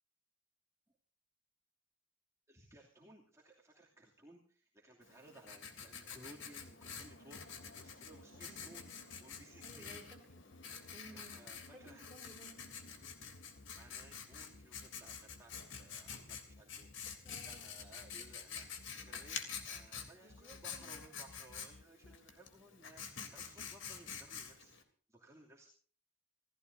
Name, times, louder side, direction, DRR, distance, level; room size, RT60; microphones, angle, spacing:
voice 1, 2.5-10.0 11.1-12.0 13.8-19.4 19.7-24.7 25.1-25.7, right 1 dB, 15° right, -4 dB, 2.7 m, -60 dB
Writing, 5.0-24.8, left 6 dB, 70° left, 3.1 m, -48 dB
sound 1, 6.6-22.2, left 2 dB, 50° left, 0.7 m, -58 dB
voice 2, 8.3-9.0 9.6-10.2 10.9-12.5 17.2-17.7 20.2-21.1 21.9-22.1, right 1 dB, 5° left, 2 dB, 4.5 m, -58 dB
28.0 x 16.5 x 2.7 m, 0.43 s
head